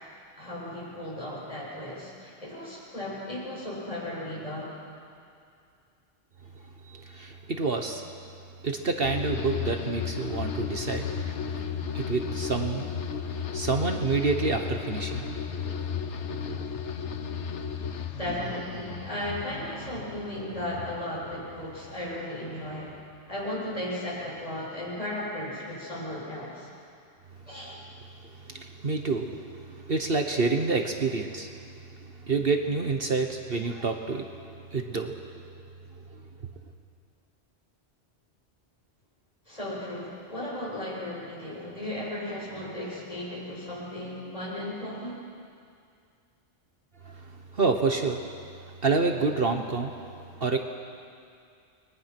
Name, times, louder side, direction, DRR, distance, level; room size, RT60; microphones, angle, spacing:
voice 1, 0.3-4.7 18.2-23.0 23.3-26.7 27.5-27.8 39.5-45.2, left 1 dB, 30° left, -6 dB, 8.0 m, -35 dB
voice 2, 6.8-8.0 8.6-11.7 11.9-12.9 13.2-15.3 15.6-16.0 16.3-16.4 28.2-31.5 32.2-34.4 34.7-35.2 36.0-36.2 47.0-48.2 48.6-49.9 50.4-50.6, right 4 dB, 55° right, 4 dB, 1.4 m, -28 dB
sound 1, 9.0-22.4 22.7-23.3, left 7 dB, 80° left, 1.3 m, -34 dB
29.5 x 22.0 x 6.0 m, 2.3 s
omnidirectional pair, 1.2 m